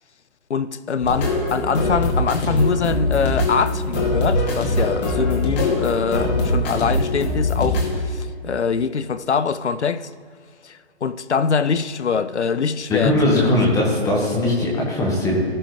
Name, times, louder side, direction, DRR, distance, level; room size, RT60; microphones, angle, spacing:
voice 1, 0.5-10.1 10.6-13.5, left 6 dB, 80° left, 0.6 m, -23 dB
sound 1, 1.0-8.0, left 1 dB, 40° left, 2.5 m, -22 dB
voice 2, 12.9-15.4, left 1 dB, 10° left, 1.5 m, -19 dB
17.5 x 6.2 x 3.2 m
figure-of-eight pair, 135°, 34 cm